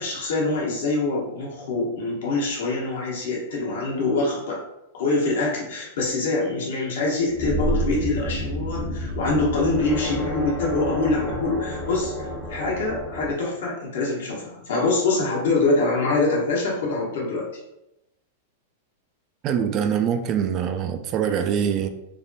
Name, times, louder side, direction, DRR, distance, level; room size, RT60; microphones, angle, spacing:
voice 1, 0.0-4.6 4.9-17.5, left 3 dB, 70° left, 1.1 m, -24 dB
sound 1, 7.3-13.3, equal, 30° left, 0.8 m, -29 dB
voice 2, 19.4-21.9, right 8 dB, 40° right, 0.3 m, -24 dB
3.2 x 2.1 x 2.7 m
hypercardioid pair, 110°, 0 cm